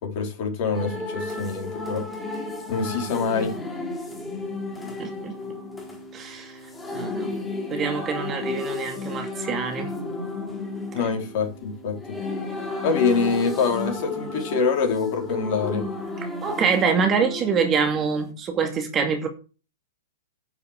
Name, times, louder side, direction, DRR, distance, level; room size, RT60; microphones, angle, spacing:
voice 1, 0.0-2.1 2.7-3.6 10.9-12.2 12.8-15.9, left 5 dB, 45° left, 4.3 m, -25 dB
sound 1, 0.7-18.3, left 2 dB, 10° left, 3.4 m, -33 dB
voice 2, 5.0-5.3 6.1-6.6 6.9-7.3 7.7-9.9 16.4-19.3, right 5 dB, 25° right, 2.4 m, -25 dB
10.0 x 7.0 x 6.7 m
figure-of-eight pair, 110°, 0 cm